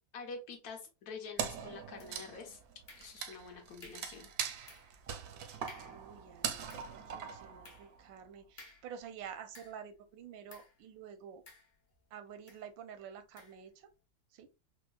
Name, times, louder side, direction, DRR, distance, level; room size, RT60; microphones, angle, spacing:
voice 1, 0.1-2.6 3.0-4.3, left 4 dB, 60° left, 1.3 m, -47 dB
Wood, 1.4-8.1, right 7 dB, 70° right, 0.9 m, -41 dB
sound 1, 2.0-2.4 2.9-3.4 3.8-4.2 4.7-5.0 5.3-5.4 5.7-6.1 6.5-10.0 10.5-10.8 11.5-12.0 12.5-12.7 13.4-13.6, left 3 dB, 40° left, 0.6 m, -57 dB
voice 2, 5.9-11.4 12.1-13.9 14.3-14.5, right 8 dB, 85° right, 1.3 m, -49 dB
4.5 x 2.2 x 2.3 m
omnidirectional pair, 2.0 m